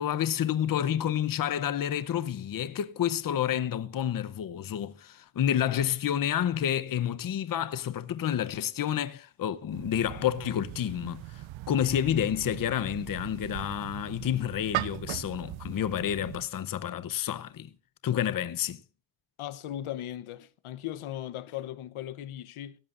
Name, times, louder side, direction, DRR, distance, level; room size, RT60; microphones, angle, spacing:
voice 1, 0.0-17.7 18.0-18.8, left 10 dB, 45° left, 0.8 m, -29 dB
sound 1, 9.7-16.5, right 15 dB, 75° right, 0.6 m, -39 dB
voice 2, 19.4-22.8, left 12 dB, 90° left, 1.0 m, -38 dB
17.0 x 14.5 x 2.5 m
wide cardioid pair, 165°, 48 cm